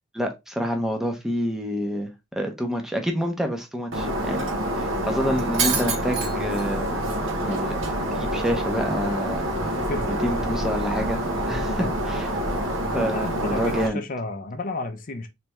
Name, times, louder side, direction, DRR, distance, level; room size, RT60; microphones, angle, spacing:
voice 1, 0.1-2.1 2.4-6.9 7.5-7.8 8.1-9.8 10.2-11.2 11.5-12.3 12.9-14.0, equal, ahead, 0.7 m, -28 dB
Shatter, 3.9-13.9, right 1 dB, 70° right, 0.9 m, -26 dB
sound 1, 7.7-12.7, equal, 35° right, 0.8 m, -38 dB
voice 2, 13.1-15.3, left 2 dB, 45° left, 0.6 m, -32 dB
3.4 x 3.3 x 3.0 m
head